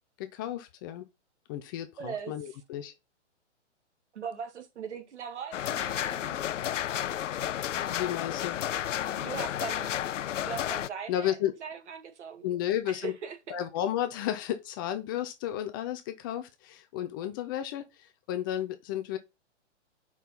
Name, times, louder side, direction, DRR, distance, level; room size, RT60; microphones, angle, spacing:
voice 1, 0.2-1.0 1.5-2.9 7.7-8.6 11.1-11.5 12.4-13.1 13.5-19.2, left 11 dB, 20° left, 0.4 m, -33 dB
voice 2, 2.0-2.3 4.1-6.5 9.0-10.0 10.4-12.6 12.9-13.6, right 7 dB, 70° right, 2.0 m, -40 dB
sound 1, 5.5-10.9, left 11 dB, 85° left, 0.5 m, -32 dB
5.5 x 4.5 x 5.8 m
hypercardioid pair, 130°, 36 cm